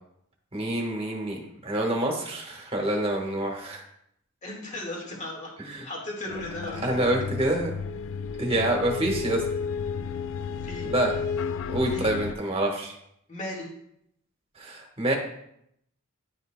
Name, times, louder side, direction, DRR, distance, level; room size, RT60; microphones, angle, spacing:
voice 1, 0.5-3.8 5.7-5.9 6.7-7.7 8.4-9.4 10.8-11.1 11.7-12.9 14.6-15.2, right 1 dB, 25° right, 1 dB, 1.3 m, -27 dB
voice 2, 4.4-7.1 10.6-10.9 11.9-12.1 13.3-13.7, left 1 dB, 35° left, -1 dB, 1.7 m, -36 dB
sound 1, 6.3-12.3, left 6 dB, 65° left, 0.3 m, -32 dB
10.5 x 5.4 x 2.2 m, 0.74 s
head